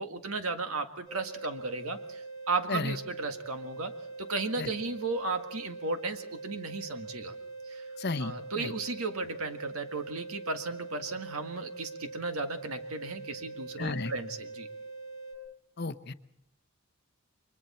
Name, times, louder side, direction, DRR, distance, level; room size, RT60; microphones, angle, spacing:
voice 1, 0.0-3.9 4.2-7.3 7.7-7.8 8.2-14.7, right 3 dB, 90° right, 7 dB, 1.8 m, -35 dB
sound 1, 1.0-15.3, right 3 dB, 20° left, 5.5 m, -43 dB
voice 2, 8.0-8.7 13.8-14.1 15.8-16.1, left 3 dB, 50° left, 12 dB, 0.8 m, -33 dB
29.5 x 23.0 x 4.3 m, 0.73 s
head